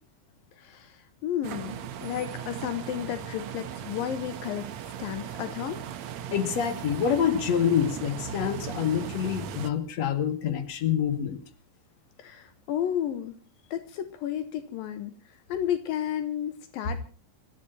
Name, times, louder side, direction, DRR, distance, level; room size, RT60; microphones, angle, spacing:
voice 1, 0.6-4.7 5.0-5.8 12.2-13.4 13.7-17.0, left 10 dB, 80° left, 10 dB, 2.8 m, -32 dB
sound 1, 1.4-9.7, right 9 dB, 65° right, 1.8 m, -38 dB
voice 2, 6.3-11.4, left 8 dB, 50° left, 7 dB, 2.9 m, -26 dB
28.0 x 14.5 x 2.8 m, 0.35 s
omnidirectional pair, 4.1 m